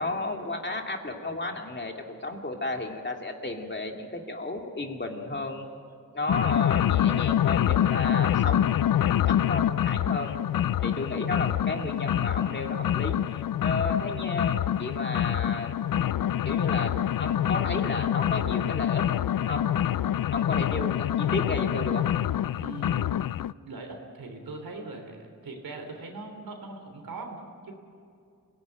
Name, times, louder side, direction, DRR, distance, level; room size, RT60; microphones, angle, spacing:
voice 1, 0.0-5.7 6.1-8.7 9.1-10.4 10.8-13.2 13.6-15.8 16.4-19.1 19.5-19.7 20.3-22.1, left 2 dB, 30° left, 2 dB, 2.5 m, -33 dB
sound 1, 6.3-23.5, left 11 dB, 70° left, 0.5 m, -26 dB
voice 2, 9.3-9.6 10.8-10.9 20.6-21.0 22.6-23.2 23.6-27.7, right 3 dB, 85° right, 4 dB, 3.5 m, -41 dB
26.0 x 17.5 x 9.2 m, 2.4 s
wide cardioid pair, 75°, 35 cm